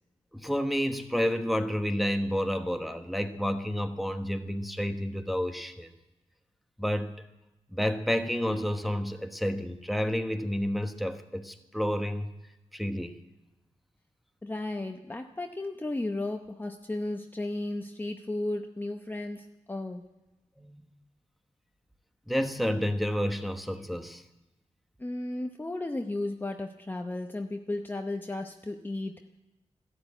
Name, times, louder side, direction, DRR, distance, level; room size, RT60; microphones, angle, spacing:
voice 1, 0.3-5.9 6.8-7.2 7.7-12.3 12.7-13.2 20.6-20.8 22.3-24.2, equal, ahead, 6 dB, 1.1 m, -30 dB
voice 2, 14.4-20.0 25.0-29.3, left 2 dB, 15° left, 4 dB, 0.8 m, -34 dB
13.0 x 12.5 x 8.7 m, 1.0 s
wide cardioid pair, 100°, 12 cm